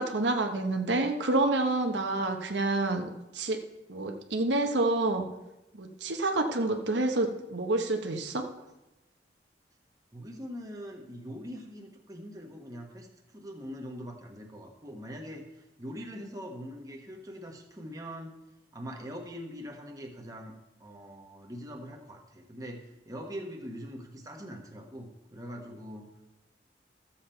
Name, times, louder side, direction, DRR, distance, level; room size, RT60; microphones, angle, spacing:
voice 1, 0.0-3.6 3.9-5.3 5.7-8.5, right 2 dB, 85° right, 4 dB, 0.9 m, -28 dB
voice 2, 10.1-13.1 13.3-18.4 18.7-20.5 20.8-26.1, equal, 20° right, 1 dB, 1.2 m, -42 dB
13.0 x 7.3 x 4.4 m, 0.95 s
head